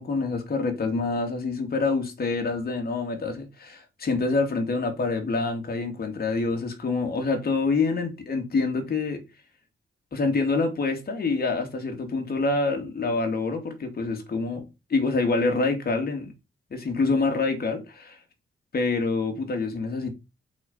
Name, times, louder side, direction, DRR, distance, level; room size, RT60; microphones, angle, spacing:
voice 1, 0.0-9.2 10.1-16.3 16.7-18.2 18.7-20.1, left 3 dB, 55° left, 2.6 m, -26 dB
7.7 x 4.5 x 5.7 m
cardioid pair, 85°, 19 cm